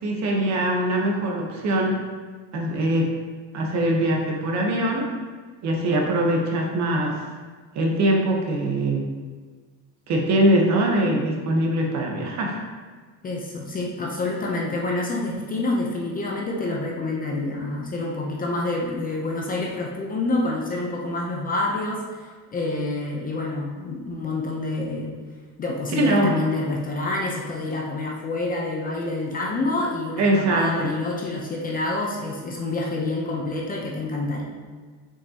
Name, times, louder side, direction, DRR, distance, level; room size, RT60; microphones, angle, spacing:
voice 1, 0.0-2.0 2.5-3.1 3.5-5.0 5.6-7.3 7.7-9.1 10.1-12.6 25.9-26.5 30.2-30.9, right 1 dB, 45° right, 0 dB, 1.1 m, -22 dB
voice 2, 13.2-25.1 25.6-34.4, left 2 dB, 25° left, -1 dB, 0.7 m, -27 dB
6.3 x 5.6 x 2.9 m, 1.5 s
cardioid pair, 155°, 37 cm